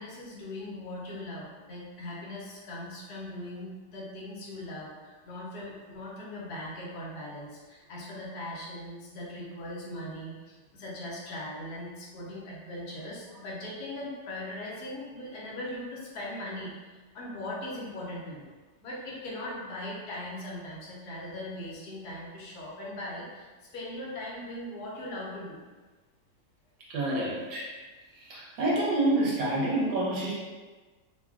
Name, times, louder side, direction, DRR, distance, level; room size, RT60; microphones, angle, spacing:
voice 1, 0.0-16.7 17.1-18.5 18.8-25.6, left 1 dB, 65° left, -5 dB, 1.2 m, -39 dB
voice 2, 26.9-27.7 28.2-30.3, right 1 dB, 75° right, -6 dB, 1.5 m, -27 dB
3.3 x 2.3 x 2.4 m, 1.3 s
omnidirectional pair, 1.9 m